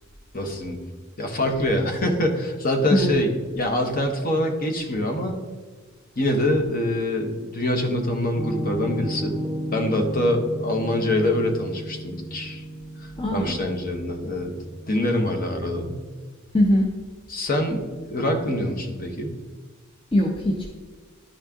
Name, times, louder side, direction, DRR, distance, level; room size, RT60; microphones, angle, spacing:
voice 1, 0.3-0.8 1.2-5.3 6.2-9.4 9.7-12.6 13.0-14.5 14.9-16.0 17.3-19.3, left 1 dB, 40° left, 3 dB, 1.1 m, -25 dB
Piano, 8.3-16.2, right 1 dB, ahead, 1.1 m, -34 dB
voice 2, 13.2-13.6 16.5-16.8 20.1-20.7, left 1 dB, 25° left, 0 dB, 0.7 m, -20 dB
11.5 x 4.3 x 3.6 m, 1.4 s
head